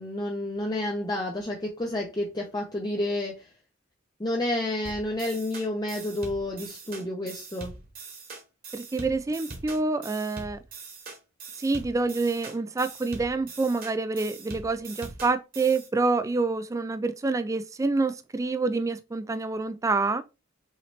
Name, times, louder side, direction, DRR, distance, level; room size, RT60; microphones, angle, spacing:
voice 1, 0.0-3.5 4.2-7.7, left 1 dB, 20° left, 0.7 m, -30 dB
sound 1, 4.8-15.9, right 3 dB, 45° right, 1.7 m, -42 dB
voice 2, 8.7-10.6 11.6-20.2, right 3 dB, 15° right, 0.3 m, -27 dB
5.6 x 2.9 x 3.1 m
head